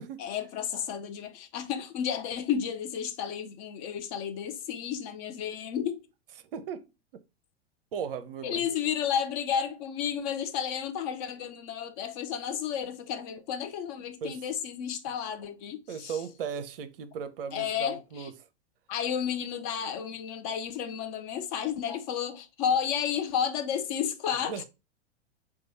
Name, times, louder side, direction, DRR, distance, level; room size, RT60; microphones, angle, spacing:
voice 1, 0.2-6.0 8.4-16.2 17.5-18.3 18.9-24.6, left 8 dB, 35° left, 0.5 m, -32 dB
voice 2, 6.4-6.8 7.9-8.7 14.2-14.4 15.9-18.3 24.5-24.6, right 7 dB, 55° right, 0.5 m, -36 dB
4.5 x 2.3 x 4.0 m
figure-of-eight pair, 95°, 33 cm